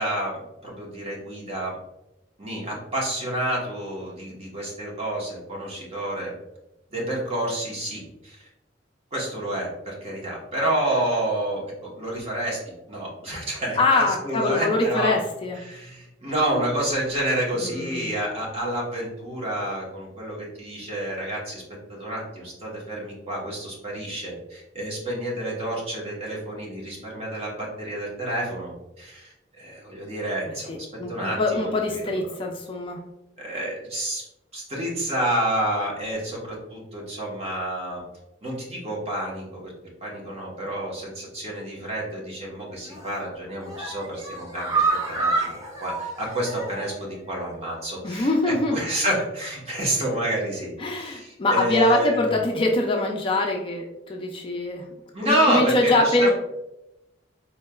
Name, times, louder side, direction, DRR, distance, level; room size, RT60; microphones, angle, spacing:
voice 1, 0.0-1.8 2.4-6.3 6.9-8.4 9.1-12.6 12.9-15.2 15.5-21.6 21.9-32.2 33.4-34.3 34.5-38.0 38.4-39.7 40.0-44.8 45.1-52.4 55.1-56.3, right 1 dB, 35° right, -3 dB, 1.1 m, -29 dB
voice 2, 13.8-15.6 17.6-18.1 30.7-33.0 48.0-48.8 50.8-54.8 55.2-56.3, left 2 dB, 30° left, 1 dB, 0.4 m, -23 dB
sound 1, 42.9-43.2 43.6-47.0 47.3-47.4 47.8-47.9, right 3 dB, 20° right, 0.7 m, -28 dB
4.4 x 3.2 x 2.3 m, 0.91 s
head